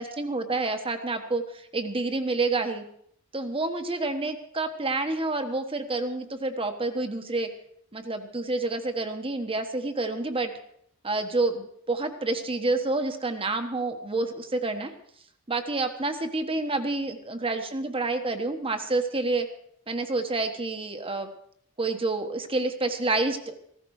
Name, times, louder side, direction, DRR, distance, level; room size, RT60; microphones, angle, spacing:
voice 1, 0.0-2.8 3.3-7.5 7.9-10.5 11.0-14.9 15.5-19.5 19.9-21.3 21.8-23.5, right 2 dB, 25° right, 7 dB, 1.3 m, -28 dB
15.5 x 14.5 x 4.9 m, 0.68 s
head